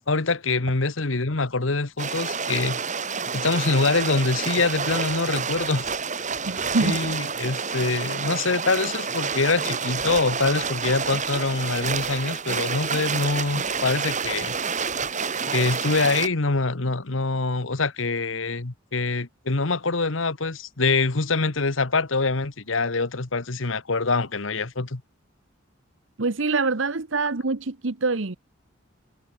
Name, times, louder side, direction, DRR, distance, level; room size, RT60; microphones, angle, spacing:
voice 1, 0.1-2.8 3.3-5.9 6.8-14.6 15.5-25.0, left 3 dB, 75° left, 1.4 m, -25 dB
sound 1, 2.0-16.3, right 5 dB, 40° right, 5.4 m, -29 dB
voice 2, 6.4-7.0 26.2-28.4, right 3 dB, 70° right, 1.1 m, -25 dB
head